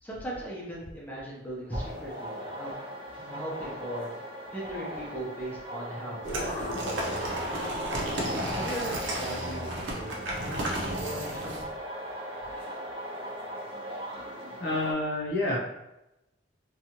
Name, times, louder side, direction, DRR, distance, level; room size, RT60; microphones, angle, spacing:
voice 1, 0.0-2.7 3.1-4.1 4.5-7.8 8.5-11.7, right 1 dB, 10° left, -6 dB, 0.7 m, -38 dB
sound 1, 1.7-14.9, equal, 30° right, 0.5 m, -39 dB
sound 2, 6.2-11.6, right 1 dB, 85° right, 0.6 m, -33 dB
voice 2, 14.6-15.6, left 2 dB, 60° left, -3 dB, 0.6 m, -28 dB
2.7 x 2.3 x 2.8 m, 0.92 s
head